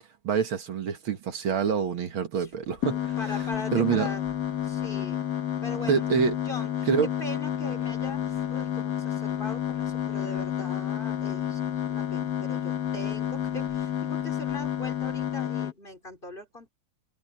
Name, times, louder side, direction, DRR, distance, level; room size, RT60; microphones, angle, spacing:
voice 1, 0.2-3.1 3.7-4.1 5.9-6.4 6.9-7.1, right 6 dB, 75° right, 2.4 m, -26 dB
sound 1, 2.8-15.7, left 10 dB, 55° left, 1.8 m, -30 dB
voice 2, 2.9-4.2 4.6-5.3 5.6-6.2 6.4-16.7, left 1 dB, 25° left, 3.2 m, -41 dB
omnidirectional pair, 2.3 m